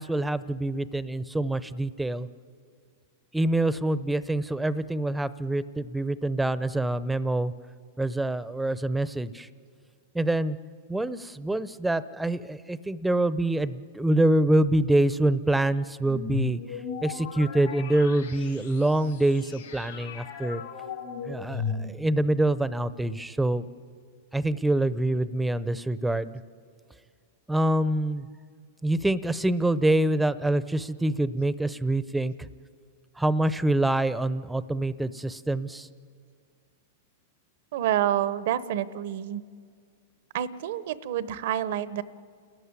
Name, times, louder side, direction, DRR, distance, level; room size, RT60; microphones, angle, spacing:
voice 1, 0.0-2.3 3.3-7.5 8.0-9.5 10.1-10.6 10.9-16.6 17.0-20.6 21.2-23.7 24.3-26.3 27.5-28.3 28.8-32.5 33.2-35.9, right 1 dB, 5° right, 16 dB, 0.7 m, -25 dB
sound 1, 16.0-22.3, left 6 dB, 90° left, 4.4 m, -36 dB
voice 2, 37.7-39.4 40.3-42.0, right 11 dB, 65° right, 16 dB, 0.9 m, -28 dB
28.5 x 14.5 x 9.7 m, 2.1 s
hypercardioid pair, 125°, 0 cm